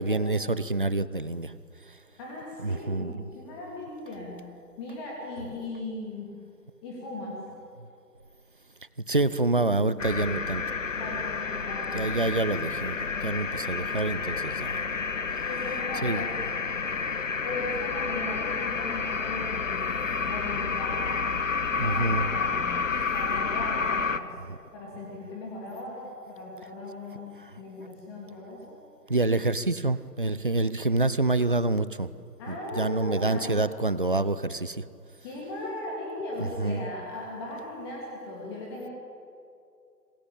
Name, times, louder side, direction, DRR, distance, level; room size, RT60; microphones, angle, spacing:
voice 1, 0.0-1.5 2.6-3.1 9.1-10.6 11.9-14.9 16.0-16.2 21.8-22.3 24.5-24.6 27.5-27.6 29.1-32.1 32.5-34.8 36.4-36.9, right 2 dB, 30° right, 16 dB, 0.7 m, -27 dB
voice 2, 2.2-4.4 4.8-6.3 6.8-7.4 11.0-12.4 15.5-16.3 17.4-21.1 21.8-22.8 23.1-24.3 24.7-28.8 32.4-33.6 35.2-38.9, left 2 dB, 15° left, -3 dB, 3.0 m, -38 dB
sound 1, 10.0-24.2, left 5 dB, 50° left, 1.3 m, -30 dB
26.0 x 23.0 x 8.9 m, 2.5 s
figure-of-eight pair, 155°, 50 cm